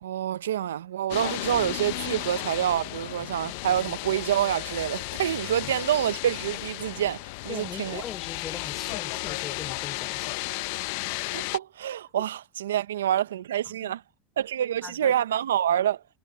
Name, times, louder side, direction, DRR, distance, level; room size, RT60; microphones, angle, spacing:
voice 1, 0.0-8.0 11.3-14.0 14.4-16.0, right 11 dB, 90° right, 0.6 m, -27 dB
sound 1, 1.1-11.6, left 24 dB, 70° left, 0.7 m, -34 dB
voice 2, 7.5-10.4 13.6-14.0 14.8-15.1, left 8 dB, 35° left, 3.2 m, -40 dB
hypercardioid pair, 90°, 0 cm